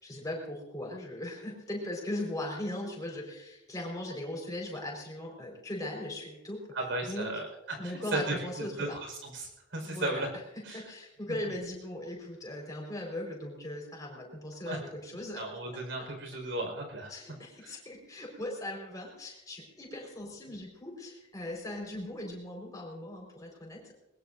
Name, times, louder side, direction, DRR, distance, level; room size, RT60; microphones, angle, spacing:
voice 1, 0.0-6.6 7.1-7.3 7.8-9.0 9.8-10.3 10.7-15.4 15.7-15.8 17.1-23.9, left 1 dB, 20° left, -1 dB, 4.5 m, -39 dB
voice 2, 6.7-10.3 10.6-10.8 14.6-14.8 15.4-17.1 17.6-17.8, right 2 dB, 90° right, 3 dB, 4.8 m, -35 dB
21.0 x 21.0 x 2.6 m, 0.91 s
head